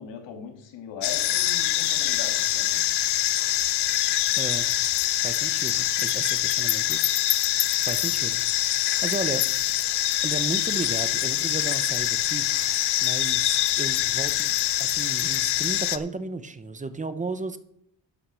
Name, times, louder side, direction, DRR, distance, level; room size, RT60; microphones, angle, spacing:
voice 1, 0.0-2.9, left 6 dB, 80° left, 3 dB, 2.5 m, -39 dB
sound 1, 1.0-16.0, left 13 dB, 65° left, 0.7 m, -24 dB
voice 2, 4.3-4.7 5.2-7.0 7.8-9.5 10.2-12.5 13.0-14.5 14.8-17.6, right 3 dB, 15° right, 11 dB, 0.8 m, -34 dB
11.5 x 5.9 x 6.3 m, 0.73 s
cardioid pair, 120°, 43 cm